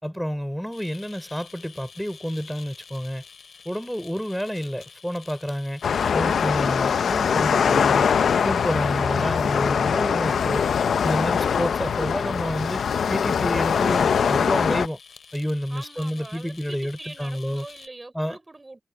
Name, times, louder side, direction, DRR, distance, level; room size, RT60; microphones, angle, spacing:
voice 1, 0.0-3.2 3.7-5.8 6.1-8.1 8.4-10.7 11.0-12.8 13.1-15.0 15.3-17.7 18.1-18.4, equal, ahead, 5.6 m, -29 dB
sound 1, 0.7-17.9, left 6 dB, 60° left, 7.8 m, -49 dB
sound 2, 5.8-14.9, left 7 dB, 80° left, 0.6 m, -22 dB
voice 2, 15.7-18.8, right 2 dB, 25° right, 5.3 m, -42 dB
wide cardioid pair, 110°, 0 cm